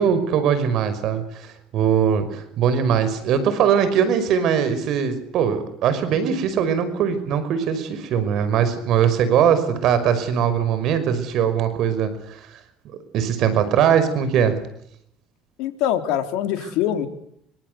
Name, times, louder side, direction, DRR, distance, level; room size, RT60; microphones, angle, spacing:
voice 1, 0.0-12.6 13.1-14.6 16.6-16.7, right 8 dB, 65° right, 11 dB, 5.6 m, -21 dB
voice 2, 15.6-17.1, left 10 dB, 70° left, 7 dB, 3.7 m, -23 dB
27.0 x 25.5 x 8.2 m, 0.74 s
supercardioid pair, 75°, 0 cm